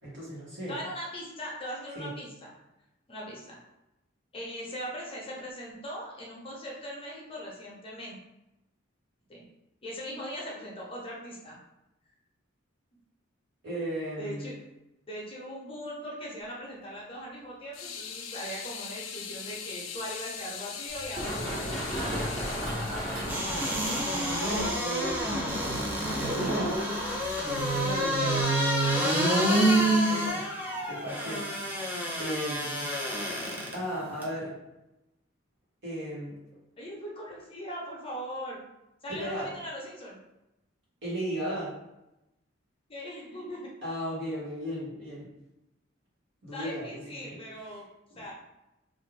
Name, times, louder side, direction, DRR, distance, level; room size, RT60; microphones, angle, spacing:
voice 1, 0.0-0.8 2.0-2.1 13.6-14.5 24.3-25.5 26.1-26.9 27.7-28.5 29.0-30.5 30.9-31.5 31.8-32.9 33.7-34.6 35.8-36.4 39.1-39.5 41.0-41.8 43.8-45.3 46.4-47.4 48.1-48.3, right 1 dB, 65° right, -7 dB, 1.3 m, -35 dB
voice 2, 0.7-2.5 3.1-3.6 4.3-8.2 9.3-9.4 9.8-11.6 14.2-14.5 15.1-23.5 24.7-25.1 36.8-38.6 39.0-40.2 42.9-43.7 46.5-47.8 48.2-48.3, equal, 30° left, -4 dB, 0.7 m, -40 dB
sound 1, 17.7-25.1 26.6-30.3, left 6 dB, 85° left, 0.4 m, -42 dB
Run, 20.9-28.4, equal, 30° right, 1.1 m, -37 dB
sound 2, 23.2-33.7 34.2-34.3, right 1 dB, 10° right, 0.5 m, -28 dB
2.5 x 2.4 x 3.3 m, 0.92 s
head